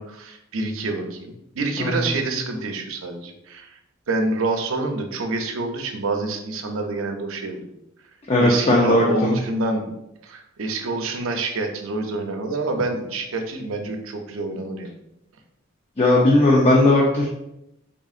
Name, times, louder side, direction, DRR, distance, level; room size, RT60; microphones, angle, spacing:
voice 1, 0.0-3.7 4.1-7.7 8.4-14.9, right 2 dB, 90° right, 4 dB, 0.6 m, -27 dB
voice 2, 8.3-9.3 16.0-17.2, left 1 dB, 30° left, -3 dB, 0.5 m, -17 dB
3.7 x 3.7 x 2.4 m, 0.85 s
head